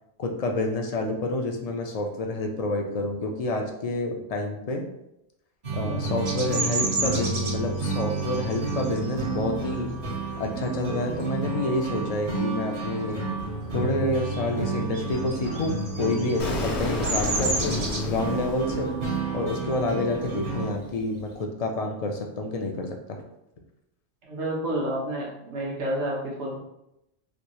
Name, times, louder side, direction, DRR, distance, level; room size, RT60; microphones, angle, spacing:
voice 1, 0.2-4.9 5.7-9.9 10.4-13.2 13.7-17.8 18.1-18.9 19.3-23.2, left 2 dB, 55° left, 2 dB, 0.4 m, -28 dB
sound 1, 5.6-20.7, right 3 dB, 70° right, 1.2 m, -31 dB
Bird vocalization bird call bird song, 6.3-11.5 11.9-12.2 12.5-13.8 14.0-21.4, right 2 dB, 40° right, 0.4 m, -33 dB
Explosion, 16.4-19.3, left 2 dB, 80° left, 1.0 m, -31 dB
voice 2, 24.3-26.6, right 1 dB, 90° right, -2 dB, 1.2 m, -29 dB
3.3 x 2.6 x 3.0 m, 0.84 s
omnidirectional pair, 1.1 m